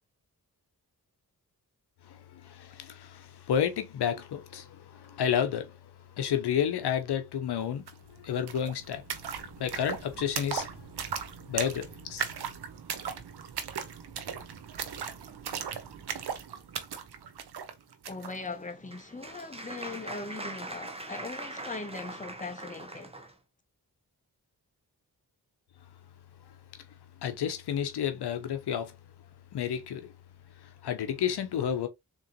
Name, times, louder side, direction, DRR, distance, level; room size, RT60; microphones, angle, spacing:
voice 1, 2.0-5.8 6.2-7.8 8.2-9.0 9.6-10.7 11.5-12.2 27.2-29.0 29.5-30.1 30.6-31.9, left 9 dB, 85° left, 0.6 m, -31 dB
sound 1, 7.9-8.0 8.2-18.4, right 7 dB, 80° right, 0.8 m, -38 dB
voice 2, 18.1-23.2, left 3 dB, 20° left, 0.9 m, -40 dB
Applause, 18.5-23.3, right 2 dB, 15° right, 0.9 m, -42 dB
3.7 x 3.0 x 2.8 m
cardioid pair, 50°, 39 cm